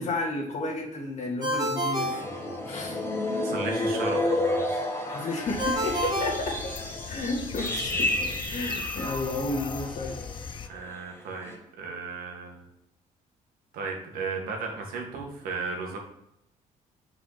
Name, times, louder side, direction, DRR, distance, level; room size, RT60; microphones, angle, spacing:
voice 1, 0.0-2.2 2.7-3.0 5.1-6.6 7.1-10.2, left 2 dB, 55° left, 0 dB, 2.0 m, -32 dB
Ringtone, 1.4-3.1 5.6-7.3, equal, 25° right, 1.7 m, -30 dB
sound 1, 1.9-10.5 10.7-11.0 11.4-11.6, left 1 dB, 20° left, 2.0 m, -31 dB
voice 2, 3.4-4.9 10.7-12.6 13.7-16.0, right 4 dB, 85° right, 1 dB, 1.6 m, -35 dB
sound 2, 5.5-10.7, left 6 dB, 35° left, 0.5 m, -39 dB
6.0 x 4.9 x 4.1 m, 0.81 s
cardioid pair, 120°, 15 cm